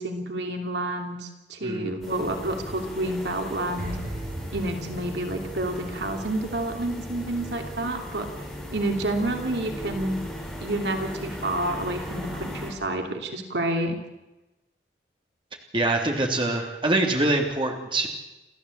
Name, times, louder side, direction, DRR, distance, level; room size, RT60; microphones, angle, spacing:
voice 1, 0.0-4.0 4.5-8.3 8.7-10.2 10.6-14.0, right 1 dB, 70° right, 4 dB, 2.8 m, -29 dB
sound 1, 2.0-12.7, equal, ahead, 6.5 m, -37 dB
sound 2, 3.8-7.0 7.2-7.5, equal, 55° right, 2.6 m, -38 dB
voice 2, 15.7-18.1, right 2 dB, 30° right, 2 dB, 3.3 m, -24 dB
29.5 x 13.5 x 8.4 m, 1.0 s
head